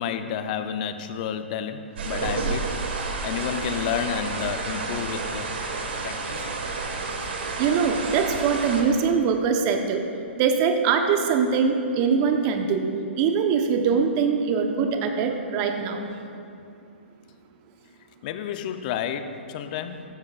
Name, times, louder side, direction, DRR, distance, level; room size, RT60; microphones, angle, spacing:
voice 1, 0.0-5.5 6.0-6.5 8.3-8.4 18.2-20.0, left 8 dB, 45° left, 9 dB, 0.7 m, -31 dB
sound 1, 2.0-8.8, right 3 dB, 65° right, 1.9 m, -30 dB
voice 2, 7.3-10.0 10.4-12.8 13.2-16.0, right 6 dB, 35° right, 5 dB, 1.1 m, -23 dB
15.5 x 13.0 x 2.5 m, 2.6 s
figure-of-eight pair, 120°, 6 cm